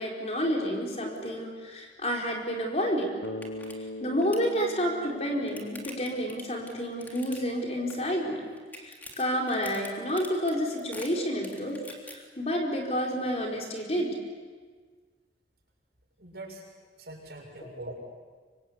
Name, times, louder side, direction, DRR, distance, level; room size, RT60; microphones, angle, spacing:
voice 1, 0.0-3.1 4.0-8.4 8.8-14.2, equal, 35° left, -1 dB, 4.7 m, -30 dB
sound 1, 2.8-2.9 3.2-3.7 4.0-4.5 5.1-7.6 7.9-8.3 8.6-12.1, left 1 dB, 10° left, 3.4 m, -45 dB
Bass guitar, 3.2-7.4, left 2 dB, 85° left, 1.5 m, -41 dB
voice 2, 16.2-16.6 17.0-18.0, right 1 dB, 65° right, 0 dB, 6.8 m, -43 dB
26.0 x 25.0 x 8.3 m, 1.5 s
head